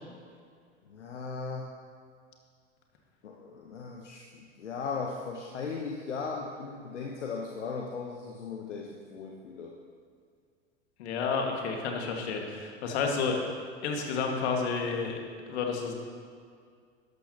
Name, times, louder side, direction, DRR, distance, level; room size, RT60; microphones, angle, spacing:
voice 1, 0.9-1.7 3.2-9.7, left 5 dB, 80° left, 0 dB, 1.1 m, -37 dB
voice 2, 11.0-13.4 13.8-15.2 15.5-15.9, left 5 dB, 65° left, 2 dB, 1.9 m, -30 dB
13.0 x 12.0 x 2.9 m, 2.1 s
hypercardioid pair, 85°, 35 cm